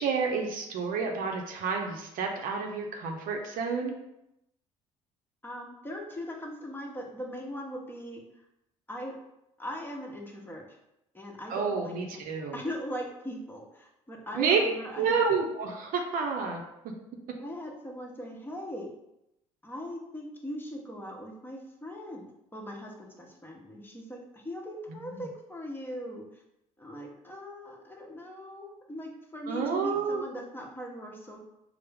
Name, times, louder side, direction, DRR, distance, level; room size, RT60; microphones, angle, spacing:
voice 1, 0.0-3.9 11.5-12.6 14.3-14.6 15.0-16.6 25.1-25.2 29.5-30.2, right 5 dB, 65° right, 2 dB, 0.6 m, -29 dB
voice 2, 5.4-8.2 8.9-9.1 9.6-10.6 11.1-12.2 12.5-15.1 17.4-18.9 19.6-22.3 22.5-26.2 26.8-31.4, equal, 15° left, -1 dB, 1.0 m, -40 dB
4.3 x 2.1 x 3.4 m, 0.86 s
hypercardioid pair, 55°, 16 cm